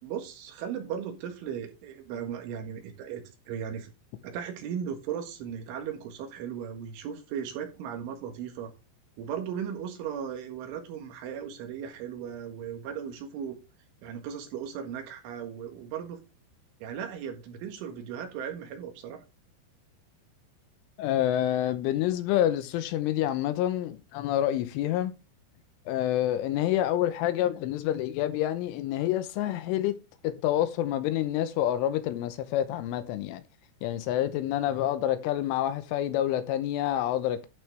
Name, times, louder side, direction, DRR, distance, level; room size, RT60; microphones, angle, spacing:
voice 1, 0.0-3.9 4.2-8.7 9.2-13.6 14.0-16.2 16.8-19.2, right 8 dB, 75° right, 4.0 m, -37 dB
voice 2, 21.0-25.1 25.9-29.9 30.2-33.4 33.8-37.5, left 12 dB, 85° left, 3.2 m, -27 dB
12.0 x 6.9 x 3.3 m
omnidirectional pair, 5.8 m